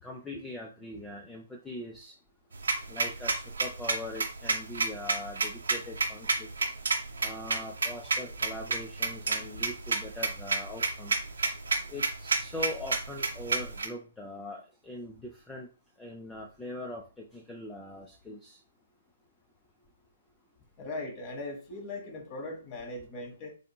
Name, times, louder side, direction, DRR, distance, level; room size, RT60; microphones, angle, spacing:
voice 1, 0.0-2.1 2.9-6.5 7.2-11.1 11.9-15.7 16.0-17.0 17.3-18.6, left 1 dB, 10° left, 0 dB, 0.5 m, -41 dB
sound 1, 2.5-13.9, right 4 dB, 70° right, 0.8 m, -29 dB
voice 2, 20.8-23.5, left 2 dB, 30° left, 3 dB, 1.2 m, -39 dB
3.7 x 3.5 x 2.2 m, 0.35 s
figure-of-eight pair, 125°, 0 cm